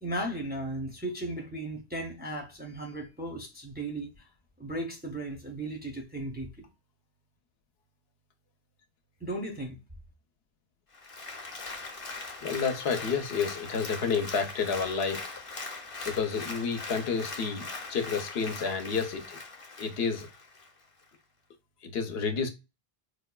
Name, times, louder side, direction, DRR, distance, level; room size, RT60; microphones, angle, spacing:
voice 1, 0.0-4.3 4.6-6.7 9.2-9.8, right 1 dB, 15° right, 0.4 m, -36 dB
Applause, 10.9-20.7 21.1-21.2, left 3 dB, 40° left, 0.6 m, -41 dB
voice 2, 12.4-15.3 16.0-19.4 19.8-20.3 21.8-22.5, left 5 dB, 85° left, 0.8 m, -30 dB
4.6 x 2.2 x 2.2 m
omnidirectional pair, 1.0 m